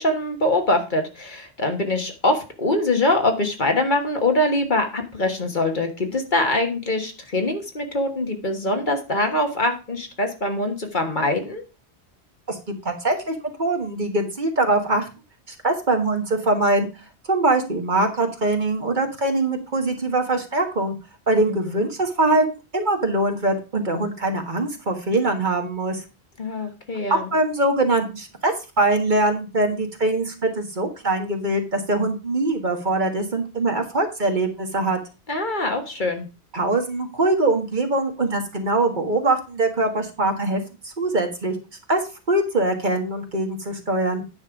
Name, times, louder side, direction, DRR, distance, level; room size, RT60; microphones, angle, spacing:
voice 1, 0.0-11.6 21.5-21.8 26.4-27.3 35.3-36.3, left 2 dB, 45° left, 5 dB, 1.6 m, -23 dB
voice 2, 12.8-15.1 15.5-16.9 17.3-20.9 21.3-22.4 22.7-26.0 27.1-35.0 36.5-41.5 41.9-42.0 42.3-44.2, right 2 dB, 45° right, 4 dB, 1.7 m, -22 dB
9.7 x 5.3 x 5.1 m, 0.30 s
omnidirectional pair, 1.1 m